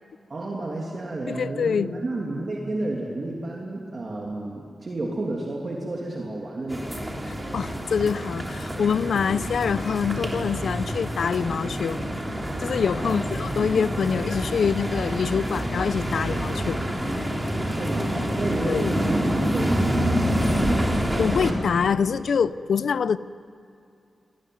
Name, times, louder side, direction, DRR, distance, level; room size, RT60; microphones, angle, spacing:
voice 1, 0.3-6.9 13.0-13.7 17.7-20.8, right 2 dB, 45° right, -2 dB, 2.8 m, -32 dB
voice 2, 1.3-1.9 7.3-12.0 12.6-16.8 18.7-19.0 21.2-23.2, left 6 dB, 80° left, 17 dB, 0.6 m, -25 dB
sound 1, 6.7-21.5, equal, 15° right, 3.4 m, -27 dB
26.0 x 19.0 x 9.5 m, 2.5 s
wide cardioid pair, 105°, 0 cm